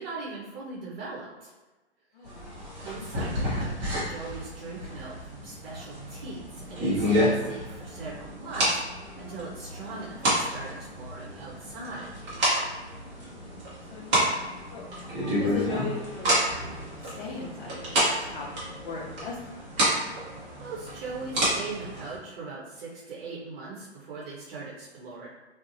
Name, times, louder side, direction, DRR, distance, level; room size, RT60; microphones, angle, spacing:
voice 1, 0.0-1.5 2.2-2.4 2.8-12.1 20.5-25.3, right 3 dB, 55° right, -5 dB, 0.7 m, -40 dB
voice 2, 2.1-2.8 13.0-13.5 13.9-14.3 14.7-16.4 17.0-18.5 18.8-19.7, left 4 dB, 50° left, -4 dB, 0.6 m, -39 dB
sound 1, 2.2-22.2, equal, 15° right, 0.5 m, -30 dB
2.7 x 2.0 x 2.6 m, 1.2 s
hypercardioid pair, 135°, 34 cm